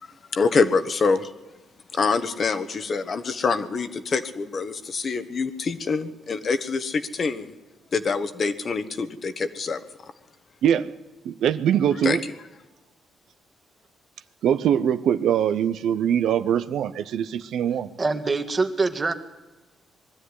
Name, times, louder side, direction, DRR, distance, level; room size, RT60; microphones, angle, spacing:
voice 1, 0.3-1.3 1.9-7.5 7.9-9.8 12.0-12.2, left 4 dB, 45° left, 11 dB, 1.3 m, -25 dB
voice 2, 10.6-10.9 11.2-12.2 14.4-17.9, right 9 dB, 75° right, 12 dB, 0.7 m, -22 dB
voice 3, 18.0-19.1, right 3 dB, 30° right, 7 dB, 1.8 m, -24 dB
21.0 x 12.5 x 9.9 m, 1.2 s
cardioid pair, 90°, 0 cm